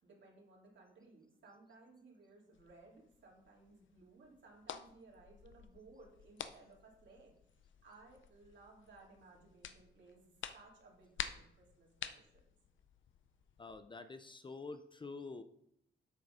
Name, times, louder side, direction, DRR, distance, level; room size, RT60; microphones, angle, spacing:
voice 1, 0.0-7.3 7.8-12.5, right 3 dB, 75° right, -2 dB, 2.7 m, -61 dB
sound 1, 2.5-13.8, left 8 dB, 85° left, 0.6 m, -51 dB
voice 2, 13.6-15.4, left 3 dB, 25° left, 10 dB, 0.5 m, -47 dB
8.1 x 6.5 x 5.0 m, 0.72 s
wide cardioid pair, 145°, 19 cm